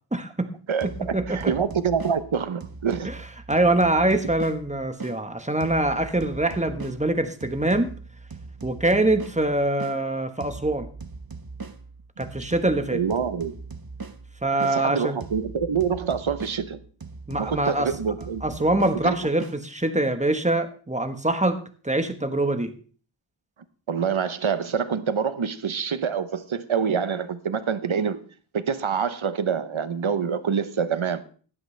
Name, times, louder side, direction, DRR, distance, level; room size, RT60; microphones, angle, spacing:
voice 1, 0.1-0.5 1.1-1.5 3.0-3.1 3.5-7.9 8.6-10.9 12.2-13.0 14.4-15.2 17.3-17.9 18.4-21.6 21.8-22.7, right 2 dB, 15° right, 1.3 m, -24 dB
voice 2, 0.7-3.1 12.9-13.6 14.6-16.8 17.4-18.4 19.0-19.2 23.9-28.2 28.5-31.2, right 6 dB, 85° right, 0.9 m, -26 dB
sound 1, 0.8-5.2 5.6-10.0 10.4-14.8 15.2-19.6, right 4 dB, 50° right, 1.1 m, -40 dB
15.5 x 11.0 x 3.3 m
wide cardioid pair, 45°, 46 cm